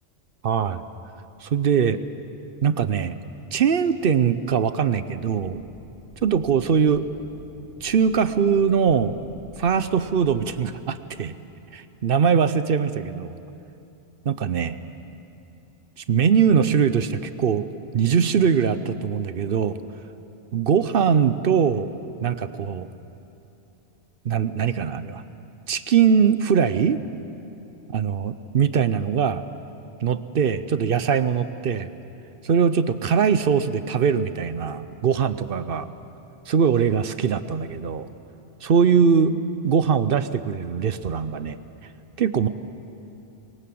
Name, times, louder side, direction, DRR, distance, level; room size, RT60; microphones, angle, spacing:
voice 1, 0.4-0.9 1.4-2.0 2.6-3.2 3.5-5.6 6.2-7.0 7.8-9.2 9.6-11.3 11.7-13.3 14.3-14.8 16.1-17.7 17.9-19.8 20.5-21.9 22.2-22.9 24.2-25.2 25.7-27.0 27.9-29.4 30.0-31.9 32.4-35.9 36.5-38.1 38.6-41.6 42.2-42.5, right 7 dB, 55° right, 13 dB, 0.8 m, -21 dB
sound 1, 5.4-10.7, left 1 dB, 75° left, 2.7 m, -48 dB
22.0 x 18.5 x 7.8 m, 2.8 s
omnidirectional pair, 1.2 m